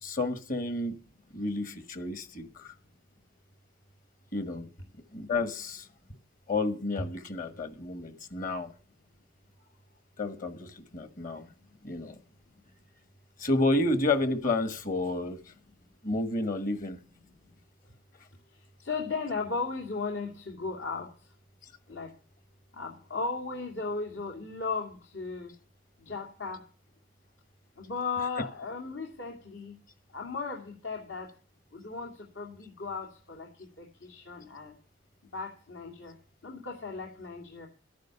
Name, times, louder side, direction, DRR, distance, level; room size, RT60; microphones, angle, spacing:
voice 1, 0.0-1.0 1.3-2.7 4.3-4.7 5.1-5.9 6.5-8.7 10.2-11.5 11.8-12.2 13.4-15.4 16.0-17.0, left 2 dB, 50° left, 11 dB, 1.4 m, -30 dB
voice 2, 18.8-21.1 21.9-22.1 22.7-25.5 26.0-26.6 27.8-29.8 30.1-31.3 31.7-34.7 35.3-36.1 36.4-37.7, left 4 dB, 80° left, -1 dB, 2.6 m, -36 dB
12.0 x 10.5 x 6.9 m, 0.39 s
head